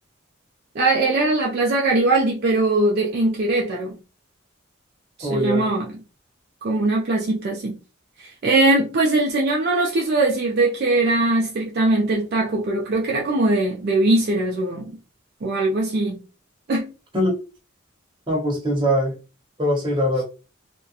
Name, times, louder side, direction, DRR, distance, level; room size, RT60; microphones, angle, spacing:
voice 1, 0.8-4.0 5.2-5.9 6.6-7.8 8.2-15.0 15.4-16.2 16.7-16.9, right 2 dB, 50° right, 0.4 m, -21 dB
voice 2, 5.2-5.7 17.1-17.3 18.3-19.2 19.6-20.2, equal, 25° right, 0.8 m, -22 dB
2.3 x 2.1 x 2.7 m
head